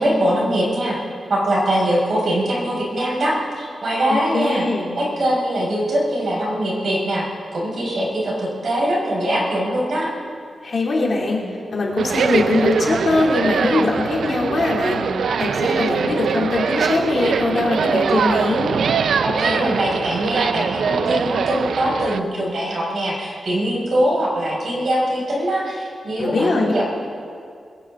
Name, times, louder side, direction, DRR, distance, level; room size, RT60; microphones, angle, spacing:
voice 1, 0.0-4.7 5.0-7.3 7.5-10.1 19.2-26.8, right 1 dB, 55° right, -4 dB, 5.5 m, -22 dB
voice 2, 4.3-4.9 10.6-11.4 11.7-15.0 15.4-18.7 26.2-26.7, left 3 dB, 50° left, -2 dB, 3.0 m, -21 dB
sound 1, 12.0-22.2, right 6 dB, 80° right, 0.5 m, -22 dB
21.5 x 16.5 x 3.8 m, 2.3 s
wide cardioid pair, 145°, 0 cm